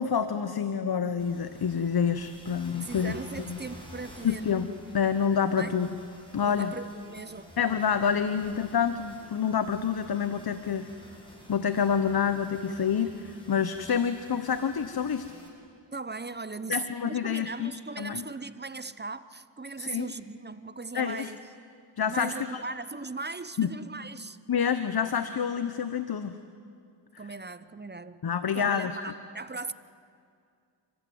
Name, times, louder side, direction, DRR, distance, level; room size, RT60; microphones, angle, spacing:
voice 1, 0.0-3.2 3.5-3.6 4.2-5.9 6.3-6.7 7.6-10.9 11.5-15.3 16.7-17.7 18.0-18.2 19.8-20.1 20.9-21.3 22.0-22.6 23.6-23.7 24.5-26.4 28.2-29.1, left 7 dB, 55° left, 11 dB, 1.0 m, -28 dB
sound 1, 1.2-15.5, equal, 10° left, 7.9 m, -50 dB
voice 2, 2.8-4.5 5.6-5.8 6.4-7.5 15.9-21.4 22.1-24.4 27.2-28.2 28.5-29.7, right 3 dB, 25° right, 14 dB, 0.8 m, -38 dB
29.0 x 15.0 x 9.4 m, 2.3 s
cardioid pair, 55°, 44 cm